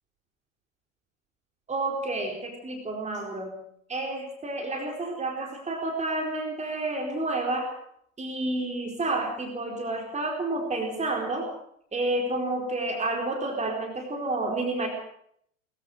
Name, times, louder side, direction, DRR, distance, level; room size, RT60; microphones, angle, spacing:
voice 1, 1.7-3.6 3.9-7.7 8.2-11.5 11.9-14.9, right 2 dB, 15° right, 2 dB, 4.4 m, -30 dB
23.0 x 14.5 x 7.9 m, 0.70 s
hypercardioid pair, 95°, 41 cm